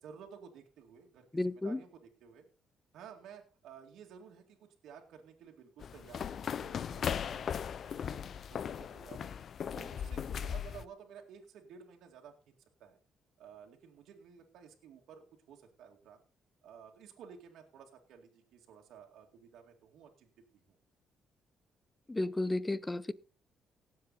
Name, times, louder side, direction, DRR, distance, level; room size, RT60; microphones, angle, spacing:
voice 1, 0.0-2.4 2.9-7.6 7.8-9.3 9.7-12.5 12.8-13.0 13.4-16.2 16.6-20.3 20.7-20.8, right 7 dB, 80° right, 2.1 m, -54 dB
voice 2, 1.3-1.8 22.1-23.1, left 2 dB, 15° left, 0.7 m, -33 dB
sound 1, 5.8-10.8, left 8 dB, 55° left, 0.5 m, -38 dB
18.0 x 7.7 x 4.1 m
cardioid pair, 90°, 0 cm